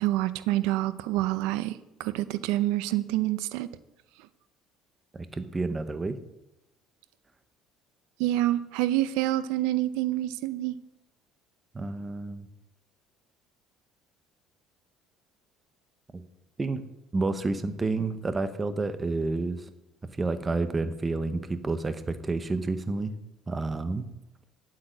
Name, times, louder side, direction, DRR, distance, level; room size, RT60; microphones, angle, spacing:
voice 1, 0.0-3.7 8.2-10.7, right 15 dB, 85° right, 15 dB, 0.6 m, -27 dB
voice 2, 5.1-6.2 11.7-12.5 16.1-16.2 16.6-16.8 17.1-19.7 20.2-23.1 23.5-24.0, right 3 dB, 15° right, 11 dB, 0.9 m, -30 dB
8.7 x 8.3 x 9.0 m, 0.91 s
cardioid pair, 135°, 0 cm